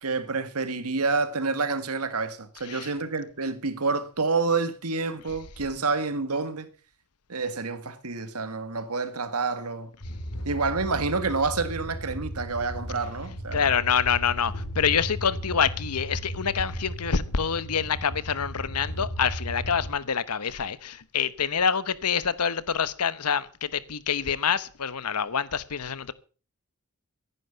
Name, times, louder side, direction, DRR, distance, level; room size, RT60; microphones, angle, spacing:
voice 1, 0.0-6.7 7.3-9.9 10.4-13.7, right 4 dB, 80° right, 1.7 m, -28 dB
sound 1, 10.0-19.9, equal, 70° left, 4.1 m, -36 dB
voice 2, 13.5-26.1, left 7 dB, 90° left, 1.0 m, -26 dB
15.0 x 11.0 x 5.8 m
head